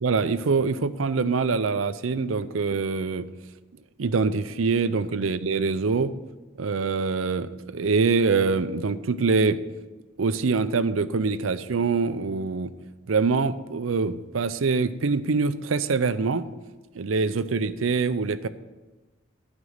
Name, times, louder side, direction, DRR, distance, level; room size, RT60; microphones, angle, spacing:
voice 1, 0.0-3.3 4.0-6.1 6.6-9.6 10.2-12.7 13.1-16.5 16.9-18.5, right 4 dB, 70° right, 13 dB, 0.5 m, -24 dB
11.5 x 5.2 x 7.9 m, 1.2 s
head